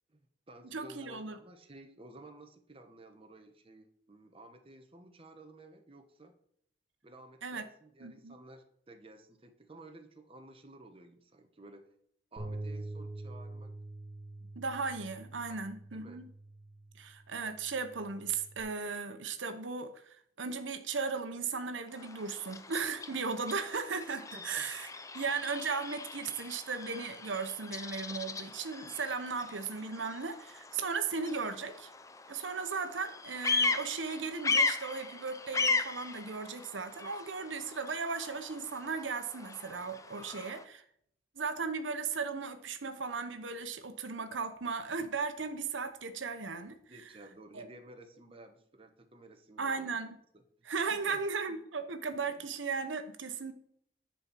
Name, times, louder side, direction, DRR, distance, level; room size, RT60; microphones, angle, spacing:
voice 1, 0.1-6.3 7.0-11.9 12.3-13.7 15.5-15.6 15.9-16.2 24.3-24.7 46.9-49.8 50.3-50.4 50.9-51.2, right 2 dB, 30° right, 6 dB, 1.1 m, -54 dB
voice 2, 0.7-1.4 7.4-7.6 8.0-8.4 14.6-16.3 17.0-20.0 20.4-24.9 25.1-31.9 32.3-40.8 41.3-47.0 47.5-47.7 49.6-50.1 50.6-53.5, right 4 dB, 85° right, 8 dB, 1.0 m, -36 dB
Bass guitar, 12.4-18.6, right 2 dB, 50° right, 2.7 m, -45 dB
Bird vocalization bird call bird song, 21.9-40.6, left 4 dB, 15° left, 0.6 m, -37 dB
10.5 x 4.4 x 7.4 m, 0.66 s
head